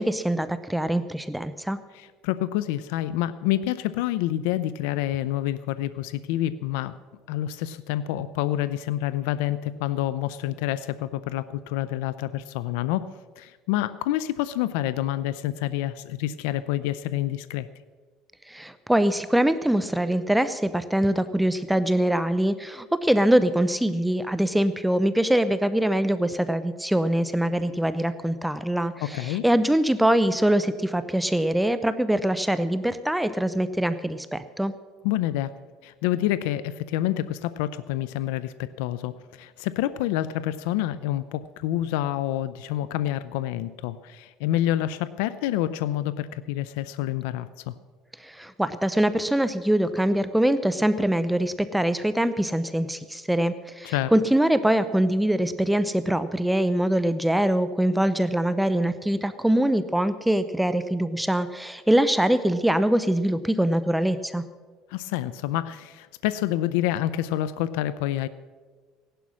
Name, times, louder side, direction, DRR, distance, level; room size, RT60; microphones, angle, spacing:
voice 1, 0.0-1.8 18.5-34.7 48.2-64.4, right 1 dB, 5° right, 12 dB, 0.5 m, -23 dB
voice 2, 1.9-6.9 7.3-13.1 13.4-17.7 29.0-29.4 35.0-35.5 35.8-47.7 53.8-54.1 64.9-68.3, left 13 dB, 90° left, 14 dB, 0.5 m, -28 dB
16.5 x 11.5 x 6.2 m, 1.5 s
cardioid pair, 130°, 0 cm